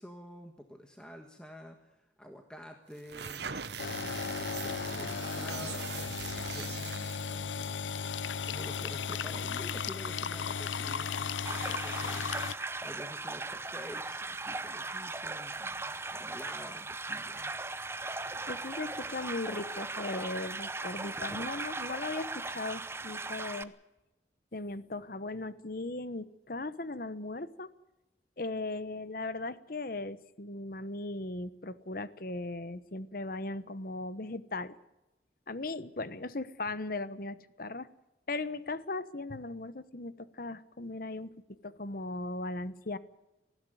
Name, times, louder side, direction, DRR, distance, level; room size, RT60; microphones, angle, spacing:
voice 1, 0.0-7.9 8.4-12.3 12.6-17.5, equal, 5° left, 4 dB, 1.5 m, -49 dB
sound 1, 3.0-7.4, right 7 dB, 65° right, 1.1 m, -41 dB
sound 2, 3.8-12.5, left 6 dB, 85° left, 0.7 m, -35 dB
sound 3, 11.5-23.6, right 3 dB, 15° right, 0.7 m, -38 dB
voice 2, 18.3-23.7 24.5-27.7 28.4-34.8 35.5-37.9 38.3-43.0, left 2 dB, 50° left, 15 dB, 1.0 m, -38 dB
19.5 x 15.5 x 9.2 m, 0.97 s
head